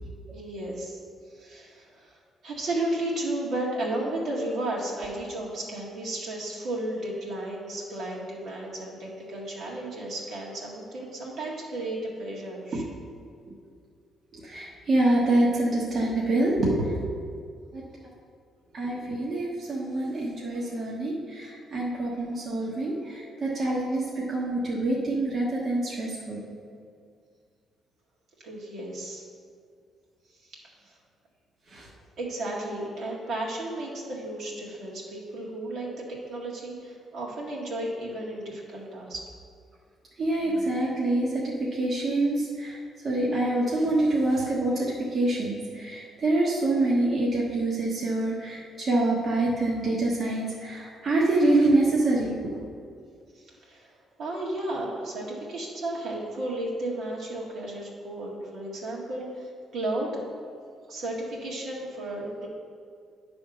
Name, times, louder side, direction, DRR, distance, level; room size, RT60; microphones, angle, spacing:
voice 1, 0.3-1.0 1.3-2.2 2.4-12.8 28.4-29.2 30.5-30.6 30.9-31.0 32.2-39.2 53.3-53.9 54.2-60.1 60.9-62.5, right 1 dB, 70° right, -4 dB, 1.9 m, -33 dB
voice 2, 14.3-16.9 17.7-17.8 18.7-26.4 31.7-31.8 40.2-42.8 43.0-52.6, right 2 dB, 45° right, -5 dB, 1.3 m, -26 dB
9.6 x 3.5 x 6.3 m, 2.2 s
cardioid pair, 90°, 0 cm